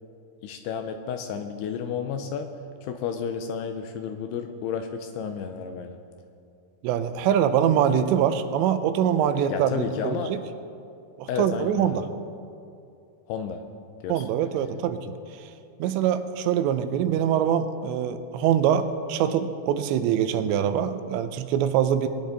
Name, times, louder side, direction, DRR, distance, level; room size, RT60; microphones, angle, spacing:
voice 1, 0.4-2.5 2.8-6.0 9.5-10.3 11.3-12.0 13.3-13.6 14.0-14.3, left 7 dB, 80° left, 6 dB, 2.5 m, -31 dB
voice 2, 6.8-10.4 11.2-12.0 14.1-15.1 15.8-22.1, right 9 dB, 85° right, 10 dB, 2.9 m, -24 dB
21.0 x 10.0 x 4.0 m, 2.5 s
omnidirectional pair, 5.0 m